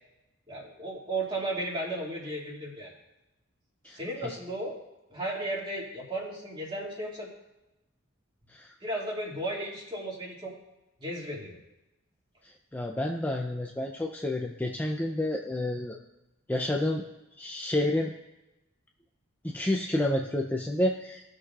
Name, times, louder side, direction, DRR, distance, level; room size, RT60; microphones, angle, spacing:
voice 1, 0.5-2.9 3.9-4.8 5.1-7.3 8.8-10.5 11.0-11.6, right 1 dB, 25° right, -3 dB, 2.3 m, -34 dB
voice 2, 3.8-4.4 8.5-8.7 12.7-16.0 16.5-17.0 17.4-18.1 19.4-21.3, left 1 dB, 10° left, 1 dB, 0.5 m, -29 dB
18.5 x 6.5 x 2.4 m, 0.97 s
head